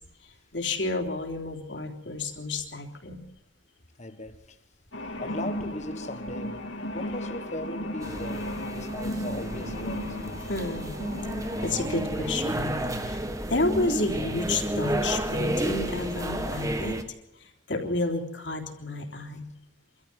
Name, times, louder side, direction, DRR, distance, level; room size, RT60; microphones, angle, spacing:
voice 1, 0.2-3.2 10.5-11.0 11.6-13.2 13.5-17.0 17.4-19.5, left 2 dB, 65° left, 3.5 m, -31 dB
voice 2, 4.0-4.6 5.2-8.5 8.7-10.2, left 1 dB, 40° left, 1.4 m, -38 dB
sound 1, 4.9-11.9, left 1 dB, 80° left, 2.5 m, -35 dB
sound 2, 8.0-17.0, right 1 dB, 15° right, 1.5 m, -31 dB
25.0 x 14.0 x 7.8 m
head